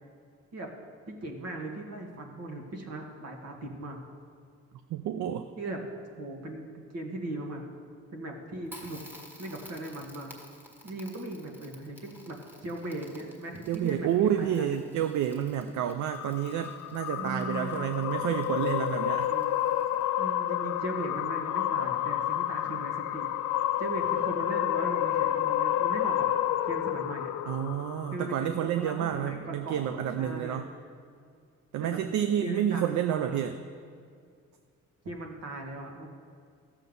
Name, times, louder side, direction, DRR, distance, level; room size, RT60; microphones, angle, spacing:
voice 1, 1.1-4.0 5.6-5.8 6.2-7.6 8.1-9.0 9.4-10.3 10.8-14.8 17.2-17.9 19.3-19.6 20.2-23.3 23.8-26.3 26.7-27.3 28.1-29.9 30.2-30.7 31.8-32.0 32.4-33.4 35.0-36.1, right 2 dB, 55° right, 1 dB, 1.9 m, -38 dB
voice 2, 4.9-5.4 13.7-19.3 27.5-30.7 31.7-33.5, right 10 dB, 75° right, 9 dB, 0.6 m, -29 dB
Crackle, 8.7-20.2, left 1 dB, 5° right, 1.7 m, -53 dB
sound 1, 16.0-28.5, left 12 dB, 75° left, 0.5 m, -30 dB
13.5 x 7.2 x 5.4 m, 2.2 s
cardioid pair, 90°, 30 cm